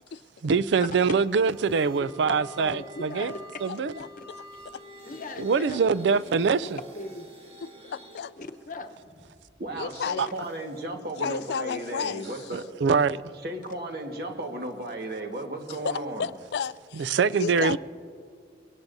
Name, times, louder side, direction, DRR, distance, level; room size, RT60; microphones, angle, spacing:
voice 1, 0.4-3.3 3.6-3.9 5.4-6.8 12.5-13.2 16.9-17.8, right 5 dB, 80° right, 0.4 m, -24 dB
sound 1, 1.0-5.9, left 1 dB, 15° right, 1.7 m, -47 dB
voice 2, 2.2-3.4 5.1-5.8 6.6-6.7 7.0-7.3 8.4-8.9 17.5-17.7, left 2 dB, 45° left, 0.9 m, -38 dB
sound 2, 4.3-8.2 8.8-10.8, right 1 dB, 35° right, 4.1 m, -48 dB
voice 3, 7.8-8.3 9.7-10.3 11.2-12.3 15.8-17.8, left 7 dB, 65° left, 0.3 m, -32 dB
voice 4, 9.6-12.7 13.4-16.3, right 1 dB, 55° right, 1.6 m, -35 dB
23.0 x 17.5 x 2.7 m
head